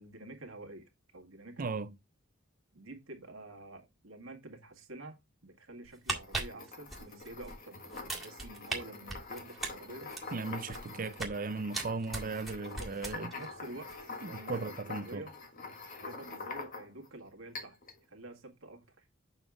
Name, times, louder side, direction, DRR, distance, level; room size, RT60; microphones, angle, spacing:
voice 1, 0.0-1.8 2.7-5.2 5.4-10.1 12.8-12.9 13.2-15.3 16.0-17.8 18.1-19.1, right 2 dB, 90° right, 1.8 m, -48 dB
voice 2, 1.6-1.9 10.3-13.3 14.2-15.2, right 4 dB, 45° right, 0.5 m, -37 dB
sound 1, 5.8-7.5 7.9-8.8 9.1-11.4 11.7-13.5 13.8-14.0, right 3 dB, ahead, 1.9 m, -38 dB
sound 2, 6.1-17.1 17.5-18.0, left 3 dB, 45° left, 1.6 m, -45 dB
7.1 x 5.5 x 3.5 m
head